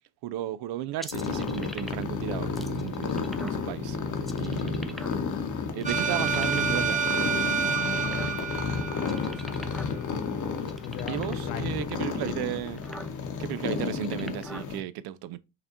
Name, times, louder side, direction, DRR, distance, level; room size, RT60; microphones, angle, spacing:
voice 1, 0.2-4.0 4.3-5.0 5.7-7.0 11.1-12.8 13.4-15.4, right 12 dB, 50° right, 0.6 m, -34 dB
sound 1, 1.0-2.2 2.6-3.6 4.2-5.4 5.8-6.8 7.4-8.6 9.0-10.0 10.2-10.3 10.6-11.5 12.2-12.3 12.6-13.1 13.8-14.7, equal, ahead, 0.4 m, -43 dB
sound 2, 1.1-14.8, left 5 dB, 35° left, 1.1 m, -32 dB
Sci Fi Growl Scream D, 5.8-9.7, right 6 dB, 15° right, 0.8 m, -29 dB
voice 2, 7.6-8.9 9.1-10.1 10.8-12.0, left 11 dB, 70° left, 0.6 m, -40 dB
5.6 x 3.5 x 2.7 m
hypercardioid pair, 55°, 50 cm